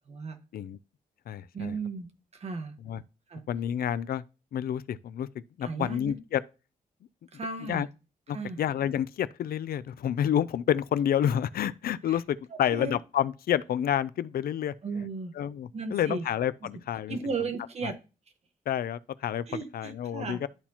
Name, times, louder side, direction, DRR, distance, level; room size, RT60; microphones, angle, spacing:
voice 1, 0.1-0.4 1.5-2.7 3.3-3.4 5.6-6.2 7.3-7.8 8.3-8.6 12.1-12.2 12.7-13.0 14.8-15.3 15.7-16.3 17.1-18.0 19.5-20.4, right 4 dB, 45° right, 1.2 m, -35 dB
voice 2, 1.3-1.7 2.8-3.0 3.5-4.2 4.5-5.3 5.6-6.4 7.7-7.9 8.3-14.7 15.4-17.2 18.7-19.4 19.7-20.5, left 10 dB, 85° left, 0.5 m, -29 dB
12.0 x 4.3 x 2.8 m
wide cardioid pair, 170°, 15 cm